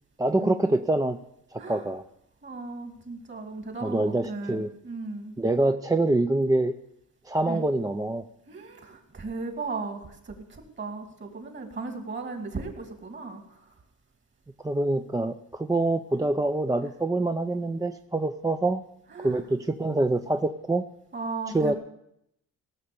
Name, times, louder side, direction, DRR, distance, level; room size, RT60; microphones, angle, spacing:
voice 1, 0.2-1.2 1.5-2.0 3.8-4.7 5.4-6.7 7.3-8.2 14.6-18.8 19.2-20.8 21.5-21.7, right 2 dB, 10° right, 7 dB, 0.5 m, -25 dB
voice 2, 2.4-5.3 7.5-7.6 8.5-13.7 19.1-19.4 21.1-21.8, right 3 dB, 40° right, 4 dB, 2.5 m, -36 dB
17.5 x 6.4 x 6.9 m, 0.79 s
cardioid pair, 90°, 30 cm